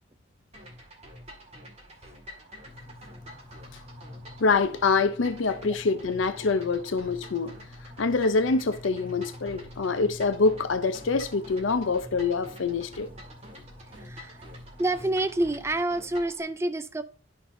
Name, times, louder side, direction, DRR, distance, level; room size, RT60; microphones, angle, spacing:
sound 1, 0.5-16.4, equal, 30° right, 1.9 m, -47 dB
sound 2, 2.6-15.8, left 2 dB, 10° left, 0.7 m, -48 dB
voice 1, 4.4-7.6 8.0-13.1, left 4 dB, 70° left, 0.5 m, -25 dB
voice 2, 14.0-14.4 14.8-17.0, right 2 dB, 15° right, 0.4 m, -28 dB
11.0 x 5.8 x 2.6 m
head